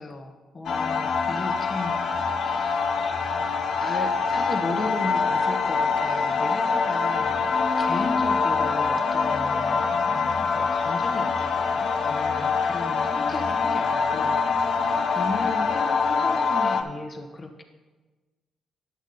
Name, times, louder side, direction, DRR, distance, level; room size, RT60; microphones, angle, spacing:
voice 1, 0.0-3.2 3.8-7.5 7.8-14.7 15.1-17.6, left 2 dB, 35° left, 5 dB, 1.2 m, -36 dB
sound 1, 0.7-16.8, left 5 dB, 65° left, 0.8 m, -24 dB
10.0 x 8.1 x 3.9 m, 1.3 s
cardioid pair, 90°, 0 cm